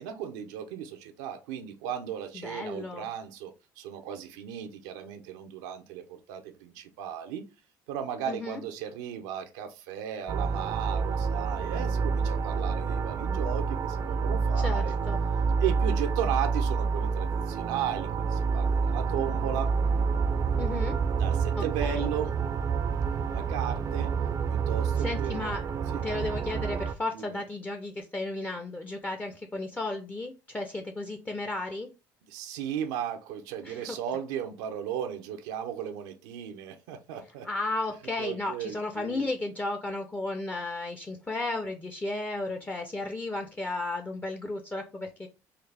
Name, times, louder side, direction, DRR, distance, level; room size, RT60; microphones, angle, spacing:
voice 1, 0.0-7.4 7.9-14.9 15.6-19.7 21.1-22.4 23.3-24.1 24.5-25.4 25.9-26.0 27.1-27.4 32.3-37.5 38.2-39.3, right 9 dB, 90° right, 0.6 m, -35 dB
voice 2, 2.3-3.1 8.3-8.6 14.6-15.2 20.6-21.0 21.6-22.1 25.0-25.6 26.0-31.9 33.6-34.0 37.4-45.3, left 2 dB, 20° left, 0.5 m, -34 dB
sound 1, 10.3-26.9, right 5 dB, 40° right, 0.4 m, -28 dB
3.8 x 2.4 x 3.3 m
supercardioid pair, 100°, 8 cm